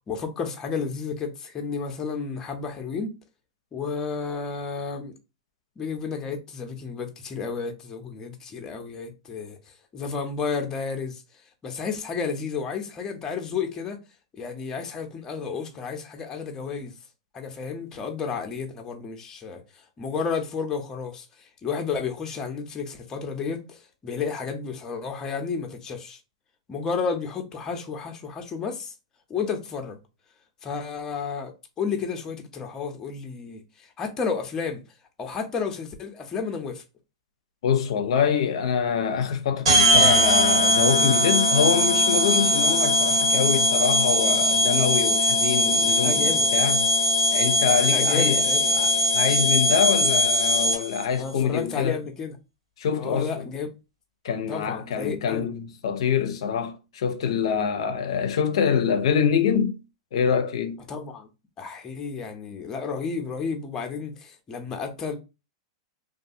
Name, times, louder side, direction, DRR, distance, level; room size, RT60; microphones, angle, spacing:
voice 1, 0.1-3.1 3.7-5.1 5.8-11.2 11.6-14.0 14.4-16.9 17.3-19.6 20.0-26.2 26.7-28.9 29.3-30.0 30.6-34.8 35.2-36.8 46.0-46.5 47.9-48.7 51.2-52.3 53.0-53.7 54.5-55.5 60.9-61.3 61.6-65.2, left 5 dB, 20° left, 0.6 m, -32 dB
voice 2, 37.6-46.9 47.3-48.5 48.7-52.0 52.8-53.4 54.2-59.8 60.1-60.8, left 7 dB, 75° left, 0.5 m, -25 dB
sound 1, 39.6-51.0, left 1 dB, 85° right, 1.3 m, -21 dB
2.6 x 2.4 x 2.6 m
hypercardioid pair, 135°, 3 cm